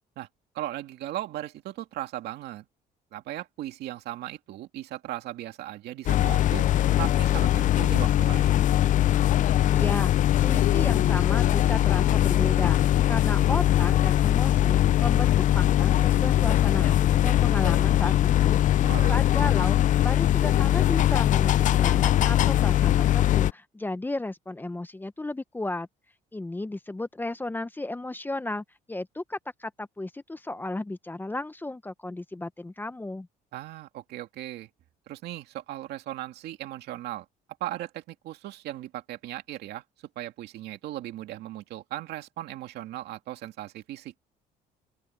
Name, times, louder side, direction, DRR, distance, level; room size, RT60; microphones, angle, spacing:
voice 1, 0.5-2.7 3.1-6.7 7.0-8.6 18.8-19.2 33.5-34.7 35.1-37.3 37.6-39.8 40.2-44.1, right 14 dB, 75° right, 2.4 m, -37 dB
sound 1, 6.1-23.5, left 13 dB, 50° left, 0.4 m, -21 dB
voice 2, 9.7-25.9 26.3-33.3, left 2 dB, 10° left, 0.9 m, -34 dB
open air
cardioid pair, 110°, 17 cm